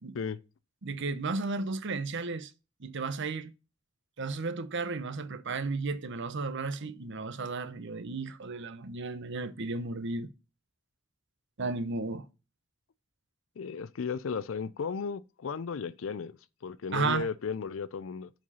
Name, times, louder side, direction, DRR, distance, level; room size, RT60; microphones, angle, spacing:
voice 1, 0.8-2.5 2.8-3.5 4.2-10.3 11.6-12.2 16.9-17.3, right 3 dB, 60° right, 0.8 m, -34 dB
voice 2, 13.6-18.3, left 5 dB, 65° left, 0.5 m, -35 dB
7.4 x 4.4 x 5.5 m
head